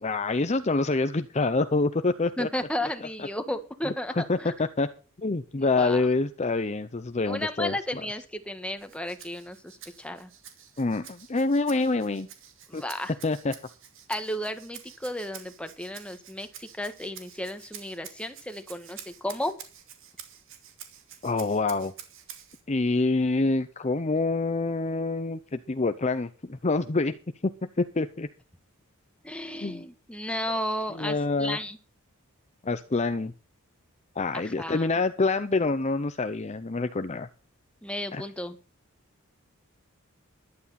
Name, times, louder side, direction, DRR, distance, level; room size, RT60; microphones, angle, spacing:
voice 1, 0.0-2.5 3.2-3.3 4.1-4.9 5.2-8.0 10.8-12.3 12.7-12.8 13.2-13.6 21.2-21.9 22.7-27.2 27.4-27.5 27.8-28.3 29.6-29.8 30.9-31.6 32.6-33.3 34.2-37.3 38.1-38.2, left 3 dB, 30° left, 10 dB, 0.7 m, -26 dB
voice 2, 2.4-4.5 5.8-6.1 7.3-10.3 12.7-13.1 14.1-19.5 29.2-31.8 34.3-34.9 37.8-38.6, left 1 dB, 5° left, 8 dB, 1.5 m, -33 dB
Rattle (instrument), 8.8-22.6, right 9 dB, 65° right, 2.5 m, -48 dB
14.5 x 11.5 x 4.2 m, 0.36 s
head